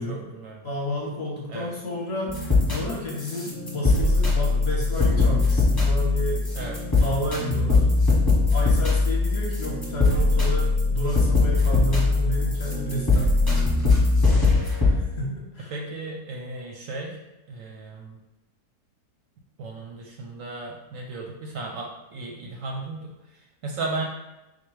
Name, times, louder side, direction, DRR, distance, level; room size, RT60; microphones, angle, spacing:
voice 1, 0.0-0.6 1.5-1.7 6.5-6.8 15.7-17.2 17.5-18.2 19.6-24.0, right 3 dB, 65° right, 0 dB, 0.9 m, -35 dB
voice 2, 0.6-2.4 2.7-7.9 8.5-13.4 14.8-15.7, equal, 55° left, -3 dB, 0.8 m, -31 dB
sound 1, 2.3-14.9, left 3 dB, 15° left, 0.9 m, -21 dB
4.3 x 2.2 x 4.6 m, 1.0 s
omnidirectional pair, 1.7 m